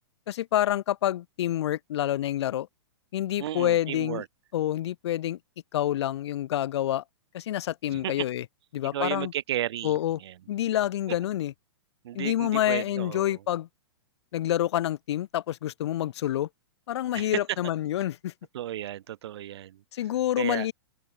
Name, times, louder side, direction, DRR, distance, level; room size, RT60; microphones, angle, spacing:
voice 1, 0.3-2.7 3.1-4.2 4.5-5.4 5.7-7.0 7.3-8.4 8.7-9.3 9.8-10.2 10.5-11.5 12.1-13.7 14.3-16.5 16.9-18.3 19.9-20.7, left 12 dB, 65° left, 0.4 m, -27 dB
voice 2, 3.4-4.3 7.9-8.3 8.9-10.4 12.0-13.4 17.1-17.4 18.5-19.8 20.4-20.7, right 12 dB, 60° right, 1.1 m, -33 dB
open air
hypercardioid pair, 150°, 15 cm